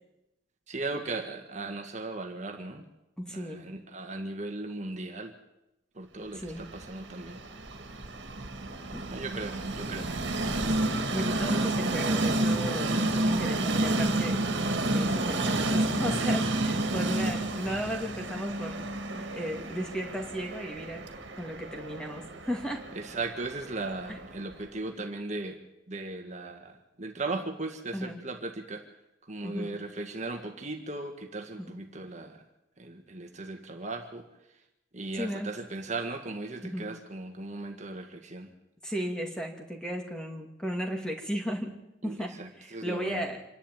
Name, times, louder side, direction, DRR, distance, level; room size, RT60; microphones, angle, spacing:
voice 1, 0.7-2.8 3.3-5.3 5.9-7.4 9.1-10.1 22.9-25.6 25.9-28.8 29.3-32.4 32.8-34.3 34.9-38.5 42.0-43.2, right 2 dB, 35° right, 4 dB, 1.7 m, -37 dB
voice 2, 3.2-3.6 6.4-6.6 8.9-9.0 10.8-14.4 14.9-21.1 21.4-22.8 27.9-28.2 29.4-29.7 31.6-31.8 35.1-35.5 36.6-36.9 38.8-41.7 42.0-42.3 42.6-43.4, equal, 5° left, 2 dB, 2.5 m, -35 dB
Train, 6.5-24.5, right 2 dB, 60° right, 2.3 m, -30 dB
26.0 x 11.5 x 9.1 m, 0.92 s
head